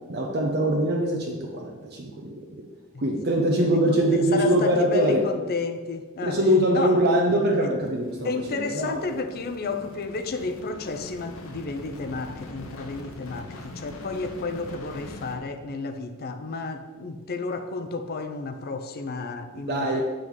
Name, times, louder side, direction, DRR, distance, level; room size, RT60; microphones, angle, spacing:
voice 1, 0.1-2.3 3.0-5.2 6.2-9.1 19.7-20.0, right 1 dB, 50° right, 0 dB, 0.7 m, -23 dB
voice 2, 3.6-6.4 6.7-7.0 8.2-20.0, left 4 dB, 45° left, 9 dB, 0.5 m, -31 dB
sound 1, 7.8-15.4, left 2 dB, 65° left, 0.8 m, -43 dB
7.4 x 3.8 x 4.7 m, 1.3 s
head